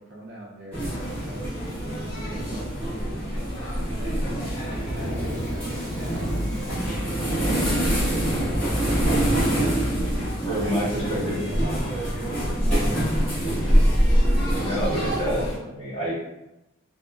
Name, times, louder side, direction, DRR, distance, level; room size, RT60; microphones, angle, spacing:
voice 1, 0.0-1.6 2.2-9.9 10.6-12.7 13.0-13.7, right 1 dB, 50° right, -5 dB, 0.6 m, -42 dB
sound 1, 0.7-15.5, equal, 5° left, 1.3 m, -25 dB
sound 2, 3.2-3.5 4.1-7.0 8.1-8.3 9.1-9.2 9.7-11.2, equal, 15° right, 1.1 m, -37 dB
voice 2, 10.4-11.4 14.3-16.1, equal, 30° left, -10 dB, 1.2 m, -28 dB
2.7 x 2.2 x 2.4 m, 0.93 s
head